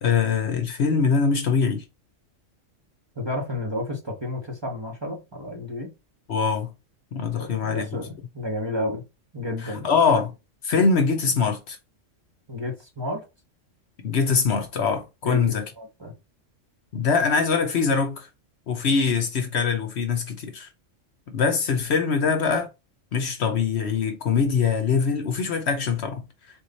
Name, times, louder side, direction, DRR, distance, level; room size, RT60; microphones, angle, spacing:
voice 1, 0.0-1.8 6.3-6.7 7.1-8.0 9.6-10.3 10.6-11.8 14.0-15.6 16.9-18.3 18.7-20.7 21.3-22.7 23.1-26.2, left 5 dB, 60° left, 1.0 m, -23 dB
voice 2, 3.2-5.9 7.3-9.0 9.3-9.9 12.5-13.2 15.2-16.1, left 1 dB, 25° right, 1.0 m, -31 dB
3.9 x 3.2 x 4.0 m
omnidirectional pair, 1.3 m